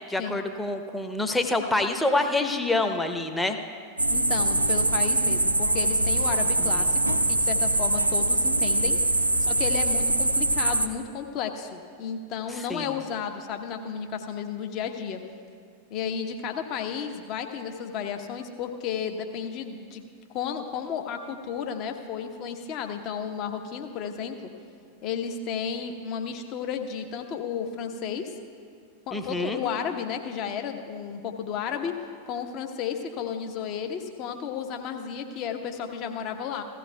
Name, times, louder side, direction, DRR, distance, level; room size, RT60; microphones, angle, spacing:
voice 1, 0.1-3.6 6.6-6.9 12.7-12.9 29.1-29.6, left 2 dB, 5° left, 5 dB, 0.9 m, -27 dB
sound 1, 4.0-10.9, right 2 dB, 85° right, 0.5 m, -23 dB
voice 2, 4.1-9.0 9.4-15.2 15.9-20.0 20.3-24.5 25.0-28.3 29.1-32.0 32.3-36.6, left 7 dB, 40° left, 5 dB, 1.0 m, -33 dB
17.0 x 14.5 x 2.3 m, 2.2 s
figure-of-eight pair, 90°, 0 cm